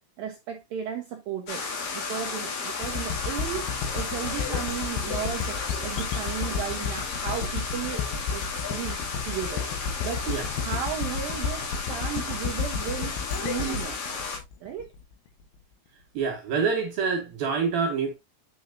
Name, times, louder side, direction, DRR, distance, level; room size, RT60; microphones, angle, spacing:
voice 1, 0.0-1.7 1.9-8.0 8.3-9.7 10.0-10.3 10.6-14.2 14.6-14.9, right 9 dB, 85° right, 2.0 m, -35 dB
sound 1, 1.5-14.4, left 4 dB, 55° left, 3.6 m, -33 dB
sound 2, 2.8-15.4, left 6 dB, 70° left, 2.5 m, -33 dB
voice 2, 16.1-18.1, right 5 dB, 65° right, 2.7 m, -26 dB
9.2 x 5.7 x 2.7 m
omnidirectional pair, 5.5 m